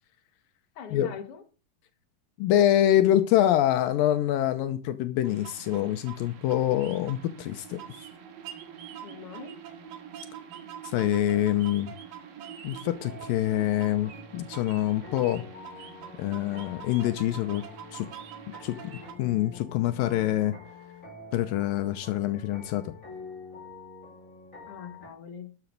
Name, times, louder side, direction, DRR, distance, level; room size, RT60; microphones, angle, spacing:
voice 1, 0.7-1.4 9.0-9.6 24.7-25.6, left 7 dB, 45° left, 4 dB, 2.5 m, -42 dB
voice 2, 2.4-7.8 10.8-11.9 12.6-15.4 16.2-17.6 17.9-18.1 18.6-20.5 21.3-23.0, left 12 dB, 80° left, 10 dB, 2.5 m, -25 dB
sound 1, 5.2-19.1, right 9 dB, 70° right, 3.4 m, -45 dB
sound 2, 12.9-25.1, left 3 dB, 20° left, 5.9 m, -47 dB
13.0 x 7.1 x 6.5 m, 0.35 s
omnidirectional pair, 4.1 m